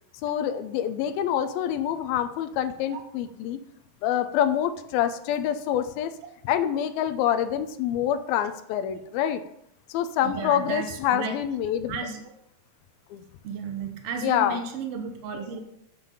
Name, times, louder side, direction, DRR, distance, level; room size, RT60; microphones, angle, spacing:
voice 1, 0.2-3.6 4.0-6.1 6.5-9.4 9.9-12.0 13.1-13.2 14.2-14.6, left 10 dB, 85° left, 9 dB, 2.6 m, -26 dB
voice 2, 10.2-11.4 11.9-12.3 13.4-15.6, right 5 dB, 80° right, 5 dB, 1.3 m, -33 dB
7.9 x 7.5 x 5.3 m, 0.76 s
omnidirectional pair, 4.2 m